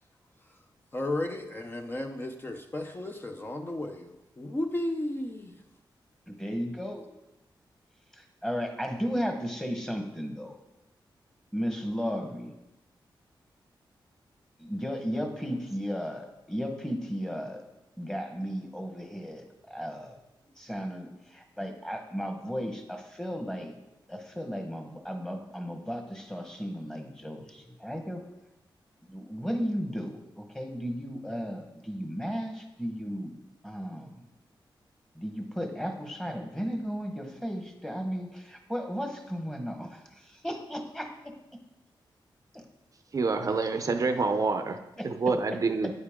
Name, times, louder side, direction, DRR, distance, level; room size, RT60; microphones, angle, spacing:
voice 1, 0.9-5.5, left 1 dB, 25° left, 4 dB, 0.7 m, -34 dB
voice 2, 6.3-7.0 8.1-10.6 11.5-12.5 14.6-17.6 18.0-20.2 20.6-23.8 24.1-28.2 29.1-33.3 33.6-34.2 35.1-41.1 42.5-42.6 45.0-45.1, equal, 5° left, 4 dB, 1.3 m, -35 dB
voice 3, 43.1-44.8 45.0-45.9, right 4 dB, 40° right, 7 dB, 0.6 m, -27 dB
9.6 x 9.4 x 3.7 m, 0.94 s
wide cardioid pair, 130°, 8 cm